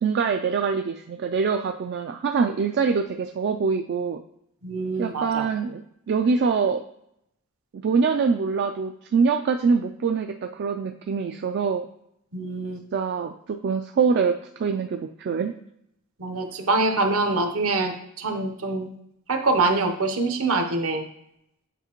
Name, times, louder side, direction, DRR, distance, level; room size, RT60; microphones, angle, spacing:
voice 1, 0.0-4.2 5.0-5.8 6.1-6.8 7.8-11.8 12.9-14.3 14.6-15.5, right 5 dB, 50° right, 6 dB, 0.3 m, -24 dB
voice 2, 4.6-5.5 12.3-12.8 16.2-18.9 19.3-21.0, right 3 dB, 70° right, 5 dB, 0.9 m, -24 dB
8.0 x 4.9 x 3.0 m, 0.77 s
head